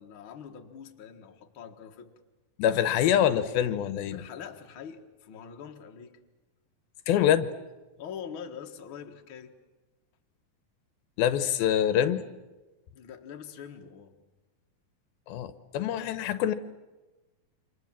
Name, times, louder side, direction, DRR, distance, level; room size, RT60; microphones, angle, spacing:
voice 1, 0.0-2.1 4.1-6.2 8.0-9.5 12.9-14.2, left 7 dB, 45° left, 3 dB, 2.0 m, -44 dB
voice 2, 2.6-4.2 7.1-7.5 11.2-12.3 15.3-16.5, left 10 dB, 85° left, 12 dB, 2.9 m, -25 dB
29.0 x 26.0 x 7.4 m, 1.1 s
omnidirectional pair, 4.2 m